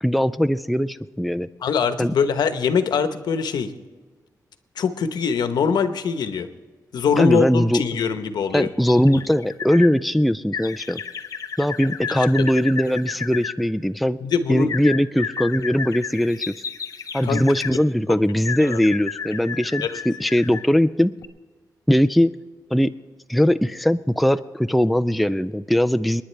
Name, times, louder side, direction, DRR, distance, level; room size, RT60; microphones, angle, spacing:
voice 1, 0.0-1.5 2.0-2.1 7.2-7.8 8.5-11.0 11.6-14.2 14.5-16.5 17.1-21.1 21.9-22.3 22.7-22.9 23.3-26.2, equal, ahead, 10 dB, 0.3 m, -20 dB
voice 2, 1.6-3.7 4.8-6.5 6.9-8.7 14.2-14.7 17.2-17.4 18.6-18.8 19.8-20.0, left 6 dB, 85° left, 9 dB, 1.0 m, -22 dB
sound 1, 8.8-9.9 10.5-13.5 14.7-17.8 18.4-20.7 21.2-21.3, left 7 dB, 55° left, 0.8 m, -32 dB
29.0 x 10.0 x 3.3 m, 1.3 s
wide cardioid pair, 145°, 7 cm